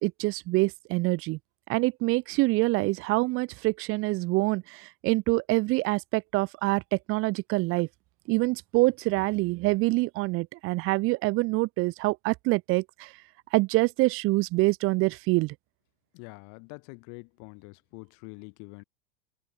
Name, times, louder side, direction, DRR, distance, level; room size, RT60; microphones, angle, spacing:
voice 1, 0.0-1.4 1.7-6.8 7.1-7.9 8.3-13.1 13.5-15.5, right 22 dB, 35° right, 0.6 m, -25 dB
voice 2, 16.1-18.8, left 36 dB, 50° left, 2.1 m, -45 dB
open air
hypercardioid pair, 120°, 38 cm